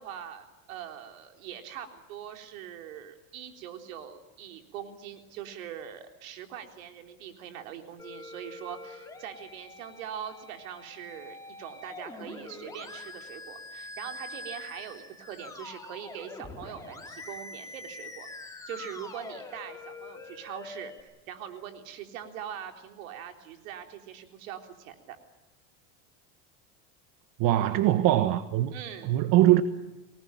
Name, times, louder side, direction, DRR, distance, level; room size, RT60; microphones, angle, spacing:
voice 1, 0.0-18.3 18.7-25.2 28.7-29.2, right 9 dB, 80° right, 3.7 m, -42 dB
Musical instrument, 8.0-21.0, left 2 dB, 10° left, 4.0 m, -44 dB
voice 2, 27.4-28.7 29.1-29.6, right 14 dB, 55° right, 1.3 m, -22 dB
25.0 x 19.5 x 8.9 m
supercardioid pair, 120°, 40 cm